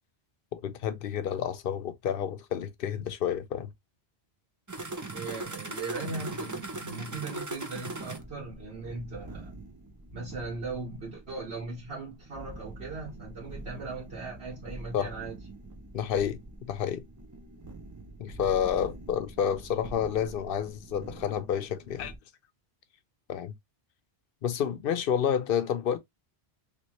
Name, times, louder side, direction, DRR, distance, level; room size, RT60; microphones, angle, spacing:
voice 1, 0.5-3.7 14.9-15.1 15.9-16.4 16.7-17.0 18.2-22.1 23.3-23.5 24.4-26.0, left 8 dB, 65° left, 0.7 m, -29 dB
sound 1, 4.7-22.2, right 2 dB, 25° right, 0.5 m, -42 dB
voice 2, 5.1-9.5 10.1-15.4, right 3 dB, 70° right, 1.6 m, -39 dB
3.4 x 3.0 x 3.0 m
omnidirectional pair, 1.1 m